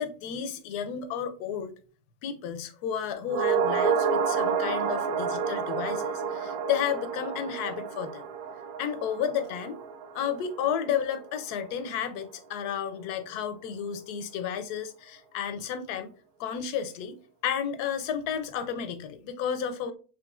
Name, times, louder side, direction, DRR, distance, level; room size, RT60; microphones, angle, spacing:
voice 1, 0.0-1.7 2.2-8.2 8.8-9.8 10.1-16.1 16.4-17.2 17.4-19.9, left 8 dB, 75° left, 1.2 m, -32 dB
sound 1, 3.3-11.7 12.0-12.1, right 6 dB, 80° right, 1.1 m, -30 dB
6.2 x 3.2 x 2.3 m
omnidirectional pair, 1.7 m